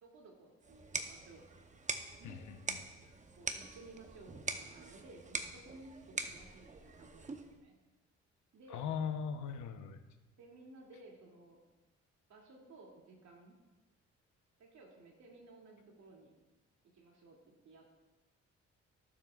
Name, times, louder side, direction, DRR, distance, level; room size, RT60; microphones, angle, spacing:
voice 1, 0.0-1.5 2.2-2.5 3.3-7.7 8.5-8.9 10.4-11.6 12.3-13.5 14.6-16.3 16.9-18.0, right 2 dB, 65° right, -1 dB, 2.8 m, -57 dB
sound 1, 0.6-7.6, right 4 dB, 25° right, 0.9 m, -43 dB
voice 2, 2.2-2.8 8.7-10.0, left 7 dB, 75° left, 8 dB, 0.9 m, -39 dB
17.5 x 7.5 x 2.5 m, 1.1 s
cardioid pair, 90°, 30 cm